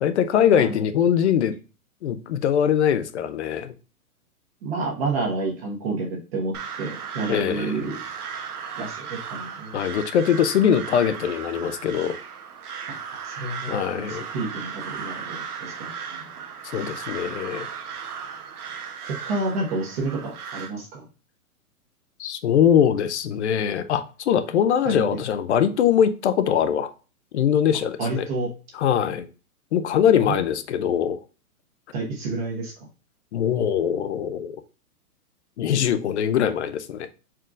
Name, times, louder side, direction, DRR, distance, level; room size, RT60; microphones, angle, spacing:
voice 1, 0.0-1.5 2.0-3.7 7.3-7.9 9.7-12.2 13.7-14.2 16.6-17.7 22.2-26.9 27.3-28.3 28.7-29.3 29.7-31.2 33.3-34.6 35.6-37.1, left 9 dB, 50° left, 0.5 m, -22 dB
voice 2, 0.5-0.9 4.6-8.0 8.8-9.8 12.9-16.3 19.0-21.0 24.8-25.2 28.0-28.5 30.2-30.4 31.9-32.7, right 3 dB, 40° right, 1.3 m, -30 dB
Crow, 6.5-20.7, right 7 dB, 75° right, 1.1 m, -36 dB
4.5 x 3.6 x 2.4 m
hypercardioid pair, 155°, 45 cm